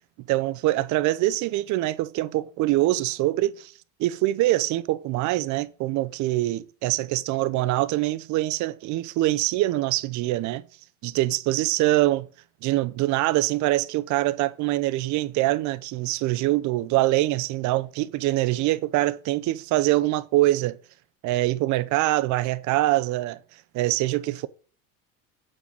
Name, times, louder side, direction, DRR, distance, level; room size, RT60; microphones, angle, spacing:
voice 1, 0.3-3.7 4.0-10.6 11.0-12.3 12.6-20.8 21.2-23.4 23.7-24.5, right 17 dB, 50° right, 0.7 m, -24 dB
8.8 x 4.0 x 6.2 m
cardioid pair, 135°, 37 cm